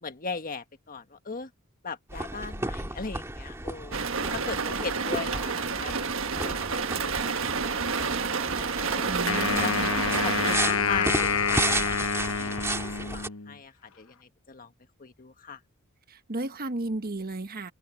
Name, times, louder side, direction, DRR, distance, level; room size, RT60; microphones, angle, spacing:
voice 1, 0.0-1.5 1.8-4.0 4.3-5.5 5.8-6.1 6.4-7.4 8.9-9.8 10.2-14.1 14.5-14.7 15.0-15.6, left 5 dB, 40° left, 1.5 m, -38 dB
sound 1, 2.1-13.3, right 2 dB, 15° right, 2.1 m, -34 dB
sound 2, 3.9-10.6, right 5 dB, 65° right, 1.5 m, -29 dB
voice 2, 9.1-10.0 16.1-17.7, right 2 dB, 45° right, 1.3 m, -34 dB
Wind instrument woodwind instrument, 9.3-13.6, left 5 dB, 70° left, 1.2 m, -28 dB
open air
head